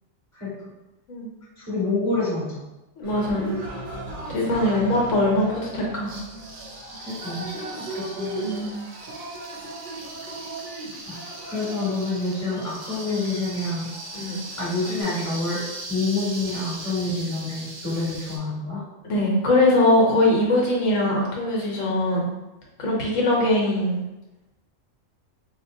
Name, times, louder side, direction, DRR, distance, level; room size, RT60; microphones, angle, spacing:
voice 1, 0.3-0.7 1.6-2.6 4.7-4.8 7.0-8.4 11.0-11.1 11.4-13.9 14.6-15.6 15.9-18.8 22.1-22.2, left 2 dB, 10° left, -9 dB, 1.4 m, -27 dB
voice 2, 3.0-3.5 4.3-6.1 8.4-8.8 14.1-14.4 19.1-22.3 22.8-24.0, left 1 dB, 70° left, -3 dB, 1.3 m, -22 dB
Cheering, 3.0-15.0, right 1 dB, 45° right, 0.8 m, -37 dB
sound 1, 6.1-18.4, right 2 dB, 75° right, 1.1 m, -39 dB
4.2 x 2.3 x 2.6 m, 1.0 s
omnidirectional pair, 1.4 m